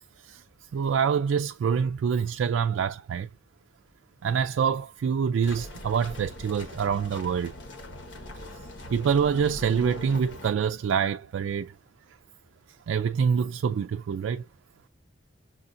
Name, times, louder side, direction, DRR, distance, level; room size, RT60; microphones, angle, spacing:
voice 1, 0.7-3.3 4.2-7.5 8.9-11.7 12.9-14.4, right 7 dB, 75° right, 0.3 m, -26 dB
sound 1, 5.4-10.5, left 1 dB, 70° left, 1.3 m, -42 dB
6.2 x 2.5 x 2.6 m
head